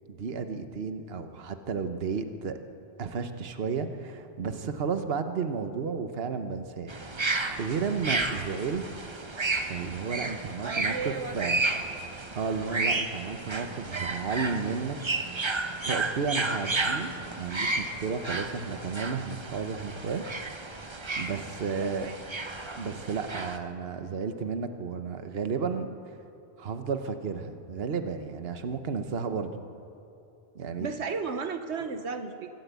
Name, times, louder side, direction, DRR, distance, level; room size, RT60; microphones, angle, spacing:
voice 1, 0.1-2.6 3.0-6.9 7.6-8.8 9.1-9.2 9.6-11.6 12.3-15.0 15.8-20.2 21.2-22.1 22.8-25.9 26.6-29.5 30.5-30.9, right 5 dB, 65° right, 8 dB, 1.3 m, -32 dB
sound 1, 6.9-23.6, right 3 dB, 25° right, 1.0 m, -32 dB
voice 2, 10.6-11.6 21.8-22.1 30.8-32.5, right 5 dB, 80° right, 7 dB, 1.3 m, -34 dB
24.5 x 14.0 x 8.3 m, 2.8 s
omnidirectional pair, 1.1 m